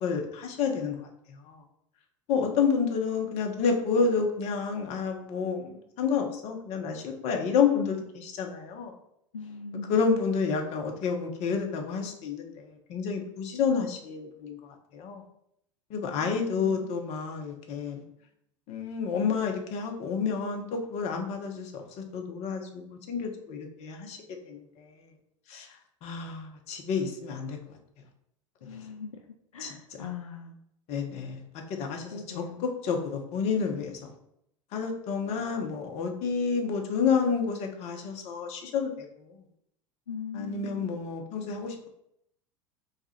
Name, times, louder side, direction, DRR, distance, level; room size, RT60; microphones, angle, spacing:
voice 1, 0.0-1.0 1.3-1.6 2.3-8.9 9.9-15.2 15.9-18.0 18.7-24.2 24.5-25.1 25.5-27.8 29.6-30.1 30.9-34.1 34.7-39.4 40.3-41.9, left 5 dB, 40° left, 3 dB, 0.8 m, -30 dB
voice 2, 9.3-10.0 16.2-17.0 28.6-29.2 29.5-30.5 32.1-32.7 40.1-40.9, left 5 dB, 75° left, 3 dB, 0.4 m, -40 dB
3.2 x 2.4 x 4.1 m, 0.75 s
figure-of-eight pair, 85°, 17 cm